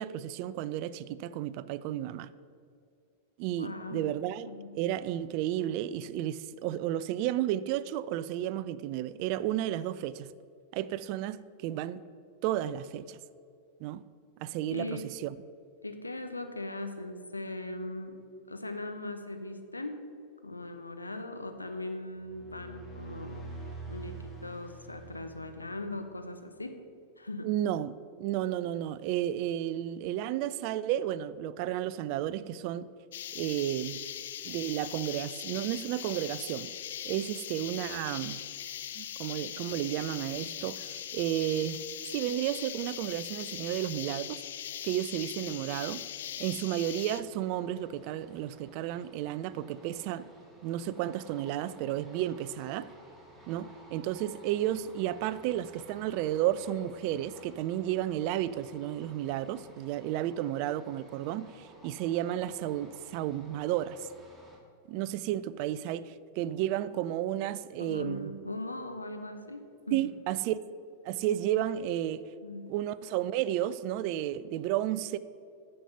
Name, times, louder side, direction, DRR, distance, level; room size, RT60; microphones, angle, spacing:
voice 1, 0.0-2.3 3.4-4.5 4.7-10.3 10.7-12.0 12.4-13.2 13.8-14.0 14.4-15.4 27.4-32.9 33.3-34.0 34.4-36.7 37.0-38.4 39.0-44.4 44.8-46.0 46.4-50.3 50.6-52.9 53.5-64.1 64.9-68.3 69.9-70.6 71.0-72.2 72.7-75.2, right 12 dB, 45° right, 0.3 m, -32 dB
voice 2, 3.6-4.1 4.4-4.8 14.7-15.1 15.8-18.2 18.5-20.0 20.4-23.5 23.9-26.7 27.2-27.5 67.8-70.1 72.4-72.7, left 2 dB, 80° left, 0.8 m, -39 dB
sound 1, 22.2-26.0, right 3 dB, 15° left, 1.9 m, -45 dB
sound 2, 33.1-47.2, left 10 dB, 60° left, 0.4 m, -40 dB
sound 3, 47.2-64.6, right 1 dB, 5° right, 2.0 m, -56 dB
10.0 x 6.6 x 5.7 m
figure-of-eight pair, 90°, 0 cm